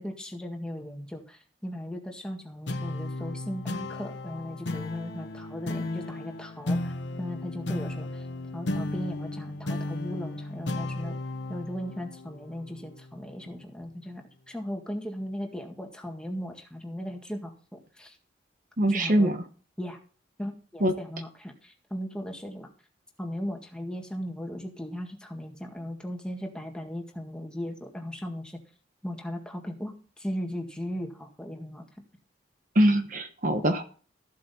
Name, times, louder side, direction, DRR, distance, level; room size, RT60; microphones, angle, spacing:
voice 1, 0.0-6.9 7.2-8.2 8.5-11.1 11.5-18.2 18.9-19.3 19.8-20.0 20.4-22.7 23.2-28.6 29.0-31.8, equal, 5° left, 2 dB, 1.8 m, -37 dB
sound 1, 2.7-13.5, left 2 dB, 80° left, 1.2 m, -35 dB
voice 2, 18.8-19.3 20.8-20.9 32.7-33.8, right 1 dB, 45° right, 7 dB, 1.1 m, -22 dB
14.5 x 7.6 x 4.3 m, 0.41 s
head